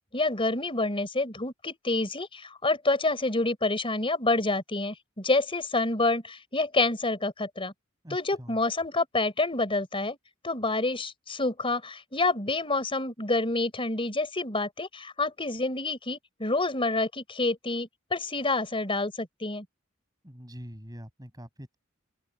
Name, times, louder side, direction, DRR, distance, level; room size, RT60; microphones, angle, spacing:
voice 1, 0.1-7.7 8.1-10.2 10.4-19.6, left 2 dB, 25° left, 5.0 m, -28 dB
voice 2, 8.0-8.6 20.2-21.8, equal, 20° right, 7.4 m, -44 dB
open air
head